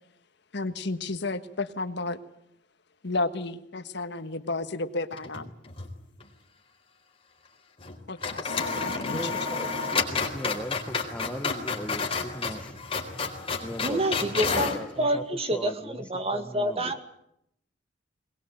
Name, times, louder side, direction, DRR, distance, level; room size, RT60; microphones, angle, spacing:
voice 1, 0.5-2.2 3.0-5.5 8.1-9.3 13.2-13.3, left 3 dB, 65° left, 10 dB, 1.4 m, -32 dB
sound 1, 5.1-5.9 6.2-6.3 7.8-7.9 8.2-14.8, left 4 dB, 30° left, 4.0 m, -30 dB
voice 2, 9.0-12.8 13.6-15.2 15.5-16.9, equal, 5° left, 6 dB, 1.2 m, -39 dB
voice 3, 13.8-17.0, right 1 dB, 35° right, 7 dB, 2.2 m, -28 dB
21.5 x 20.5 x 9.1 m, 0.76 s
head